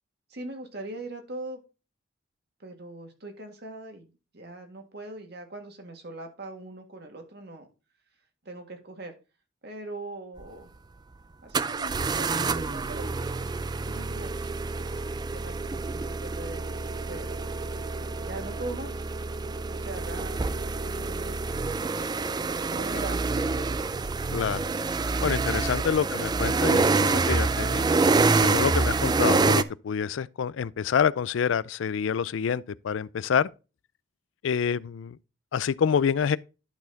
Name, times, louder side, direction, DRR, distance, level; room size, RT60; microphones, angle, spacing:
voice 1, 0.3-1.6 2.6-7.7 8.4-9.2 9.6-10.7 11.4-13.1 13.8-14.4 14.7-16.6 17.1-17.5 18.2-19.0 19.6-20.4 20.9-21.3 22.7-23.2, right 2 dB, 55° right, 1.8 m, -41 dB
sound 1, 10.4-10.5 11.5-29.6, right 3 dB, 20° right, 0.3 m, -27 dB
voice 2, 25.2-33.5 34.4-35.2 35.5-36.4, left 7 dB, 75° left, 0.4 m, -27 dB
11.5 x 4.2 x 3.9 m
head